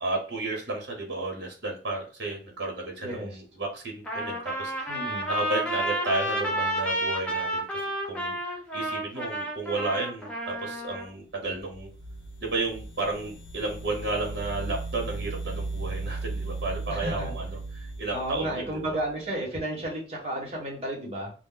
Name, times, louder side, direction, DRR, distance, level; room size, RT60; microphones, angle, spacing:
voice 1, 0.0-7.6 8.1-11.9 12.4-19.0, right 2 dB, 75° right, 1 dB, 0.8 m, -33 dB
voice 2, 3.0-3.4 4.9-5.3 16.9-17.3 18.1-21.3, right 1 dB, 35° right, -2 dB, 1.0 m, -33 dB
Trumpet, 4.1-11.1, right 1 dB, 5° left, 0.5 m, -30 dB
sound 1, 11.5-19.1, right 3 dB, 75° left, 0.6 m, -36 dB
2.2 x 2.1 x 3.7 m, 0.38 s
head